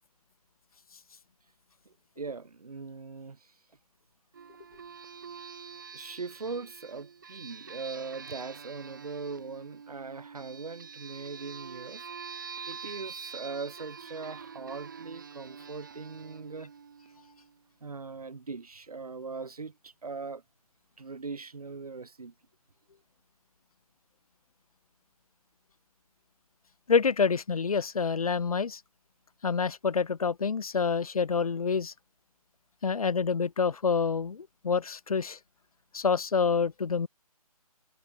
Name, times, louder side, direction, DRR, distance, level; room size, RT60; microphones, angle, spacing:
voice 1, 1.9-3.5 5.9-12.1 12.7-16.7 17.8-20.4 21.0-22.3, right 4 dB, 75° right, 0.6 m, -40 dB
sound 1, 4.3-17.6, right 6 dB, 35° right, 0.6 m, -46 dB
voice 2, 26.9-28.8 29.4-31.9 32.8-35.4 35.9-37.1, left 5 dB, 70° left, 0.4 m, -27 dB
figure-of-eight pair, 150°, 19 cm